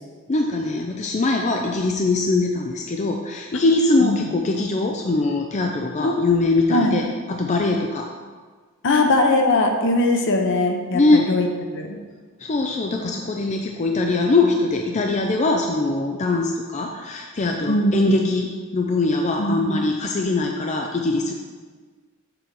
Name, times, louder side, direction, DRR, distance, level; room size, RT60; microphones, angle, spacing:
voice 1, 0.3-8.1 10.9-11.3 12.4-21.3, left 2 dB, 35° left, 2 dB, 0.5 m, -22 dB
voice 2, 6.0-6.4 6.7-6.9 8.8-11.5 11.7-12.0 17.7-18.4 19.4-19.8, left 2 dB, 60° left, 3 dB, 0.9 m, -21 dB
6.9 x 6.1 x 4.0 m, 1.5 s
head